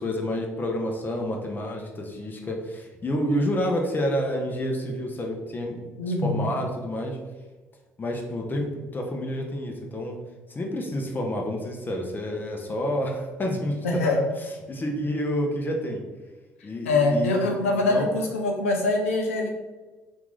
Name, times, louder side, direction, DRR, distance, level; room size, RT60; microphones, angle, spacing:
voice 1, 0.0-7.2 8.0-10.2 10.5-14.2 14.7-16.0 16.6-18.1, equal, 25° left, 1 dB, 0.7 m, -29 dB
voice 2, 6.0-6.5 13.8-14.2 16.8-19.5, left 2 dB, 80° left, 1 dB, 0.5 m, -24 dB
2.9 x 2.5 x 3.7 m, 1.3 s
figure-of-eight pair, 50°, 7 cm